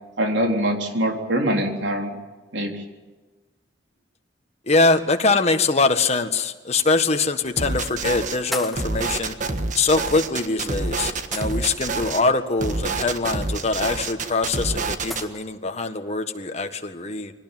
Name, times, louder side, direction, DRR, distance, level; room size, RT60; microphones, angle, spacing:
voice 1, 0.2-2.1 2.5-2.8, right 1 dB, 70° right, 3 dB, 4.0 m, -23 dB
voice 2, 4.7-9.3 9.7-17.3, left 3 dB, 35° left, 6 dB, 1.7 m, -23 dB
sound 1, 6.6-6.7 7.7-7.9 8.5-9.0 10.4-10.5 11.3-11.9 13.9-14.0 15.1-15.4, left 1 dB, ahead, 1.7 m, -35 dB
sound 2, 7.6-8.4 8.7-12.2 12.6-15.2, right 3 dB, 40° right, 1.5 m, -27 dB
24.0 x 18.5 x 9.2 m, 1.3 s
head